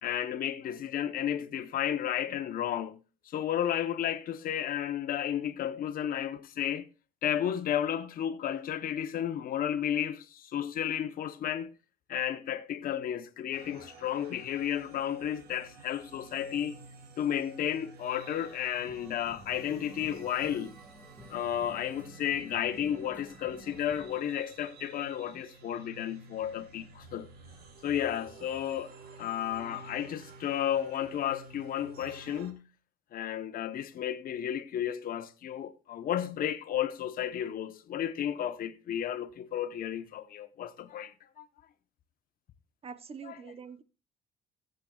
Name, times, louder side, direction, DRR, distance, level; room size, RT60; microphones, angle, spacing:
voice 1, 0.0-6.9 7.2-11.7 12.1-16.8 17.2-20.8 21.3-27.3 27.8-28.9 29.2-32.7 33.1-41.5 43.2-43.5, left 10 dB, 60° left, 1.0 m, -33 dB
sound 1, 13.5-32.5, right 4 dB, 65° right, 2.3 m, -52 dB
sound 2, 18.8-24.2, right 2 dB, 10° right, 1.7 m, -52 dB
voice 2, 42.8-43.8, right 6 dB, 35° right, 0.9 m, -44 dB
18.5 x 7.9 x 2.4 m
cardioid pair, 110°, 17 cm